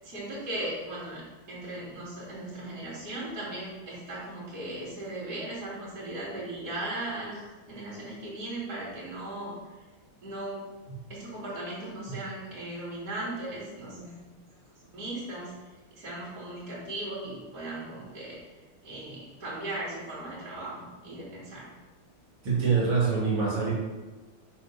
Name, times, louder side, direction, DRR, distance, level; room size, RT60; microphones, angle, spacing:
voice 1, 0.0-9.6 10.2-10.7 11.1-14.1 14.9-15.5 15.9-18.4 18.8-21.7, right 1 dB, 45° right, -8 dB, 3.3 m, -37 dB
voice 2, 22.4-23.7, right 5 dB, 80° right, -6 dB, 3.4 m, -25 dB
6.1 x 4.8 x 6.0 m, 1.2 s
omnidirectional pair, 2.4 m